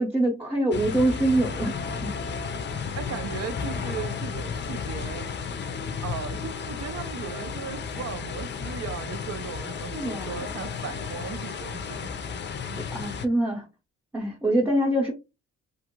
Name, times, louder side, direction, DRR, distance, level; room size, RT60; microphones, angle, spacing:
voice 1, 0.0-1.7 2.0-2.1 9.9-10.4 12.9-13.7 14.1-15.1, right 1 dB, 5° right, 0.7 m, -24 dB
sound 1, 0.7-13.3, left 6 dB, 35° left, 0.5 m, -33 dB
voice 2, 2.9-5.3 6.0-12.1 12.7-12.8, right 7 dB, 55° right, 0.5 m, -37 dB
2.5 x 2.4 x 2.9 m
cardioid pair, 90°, 30 cm